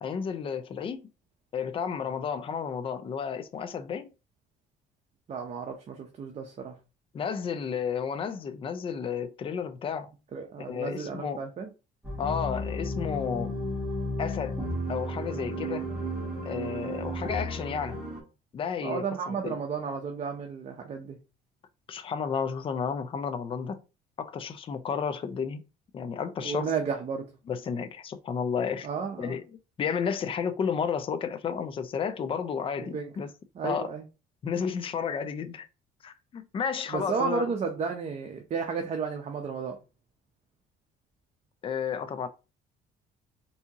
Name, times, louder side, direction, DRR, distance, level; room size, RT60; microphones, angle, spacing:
voice 1, 0.0-1.0 1.5-4.1 7.1-10.1 10.6-11.4 12.2-13.5 14.2-14.6 14.9-15.9 16.4-18.0 18.5-19.6 21.9-23.8 24.2-25.6 25.9-26.7 27.5-28.9 29.2-29.4 29.8-33.3 33.6-33.9 34.4-35.7 36.0-37.5 41.6-42.3, left 6 dB, 30° left, 0.4 m, -32 dB
voice 2, 5.3-6.8 10.3-11.7 18.8-21.2 26.4-27.2 28.8-29.4 32.8-33.0 33.5-34.0 36.9-39.8, right 5 dB, 40° right, 0.7 m, -33 dB
sound 1, 12.0-18.2, equal, 5° right, 1.5 m, -33 dB
3.5 x 2.8 x 2.7 m
cardioid pair, 110°, 17 cm